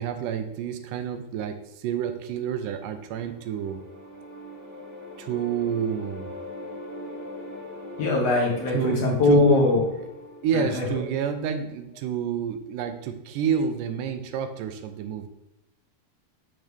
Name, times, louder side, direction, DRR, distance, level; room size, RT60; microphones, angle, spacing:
voice 1, 0.0-3.8 5.2-6.3 8.7-9.7 10.0-10.1 10.4-15.3, right 7 dB, 85° right, 8 dB, 2.1 m, -29 dB
sound 1, 2.7-11.8, left 2 dB, 10° right, 1.7 m, -41 dB
voice 2, 8.0-9.8 10.7-10.8, left 2 dB, 60° left, -2 dB, 2.1 m, -21 dB
6.5 x 6.2 x 3.4 m, 0.88 s
omnidirectional pair, 3.8 m